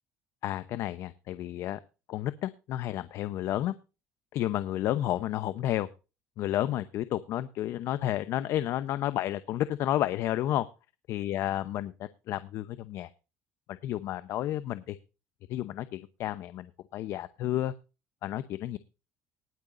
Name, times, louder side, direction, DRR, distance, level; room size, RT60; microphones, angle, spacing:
voice 1, 0.4-1.8 2.1-3.7 4.3-5.9 6.4-10.7 11.1-13.1 13.8-15.0 15.5-17.7 18.2-18.8, left 13 dB, 55° left, 13 dB, 0.8 m, -31 dB
19.5 x 8.9 x 2.6 m, 0.30 s
cardioid pair, 155°, 6 cm